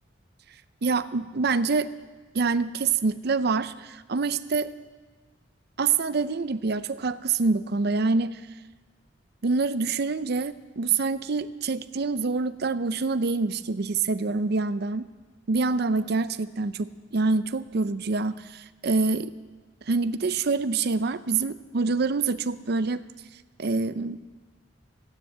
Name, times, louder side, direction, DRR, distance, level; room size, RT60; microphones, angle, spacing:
voice 1, 0.8-1.9 2.3-4.7 5.8-8.4 9.4-15.0 15.5-19.3 19.9-23.0 23.6-24.2, right 4 dB, 60° right, 14 dB, 0.6 m, -26 dB
15.5 x 9.7 x 7.5 m, 1.4 s
head